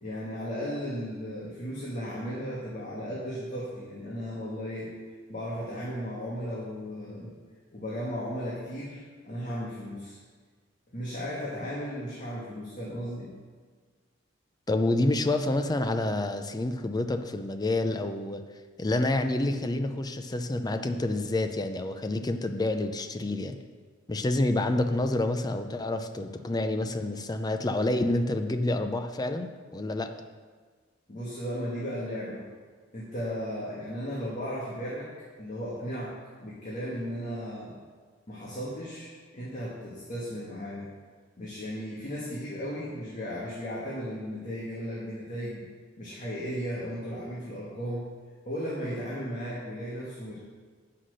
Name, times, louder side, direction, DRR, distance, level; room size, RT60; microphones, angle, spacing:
voice 1, 0.0-4.9 5.3-7.3 7.7-10.2 10.9-13.3 31.1-32.4 32.9-35.1 35.4-36.2 36.4-37.7 38.3-40.9 41.4-45.6 46.0-48.0 48.5-50.4, equal, 40° left, -6 dB, 1.7 m, -35 dB
voice 2, 14.7-18.4 18.8-23.6 24.1-30.1, left 2 dB, 20° left, 7 dB, 0.5 m, -28 dB
8.3 x 5.8 x 6.3 m, 1.5 s
head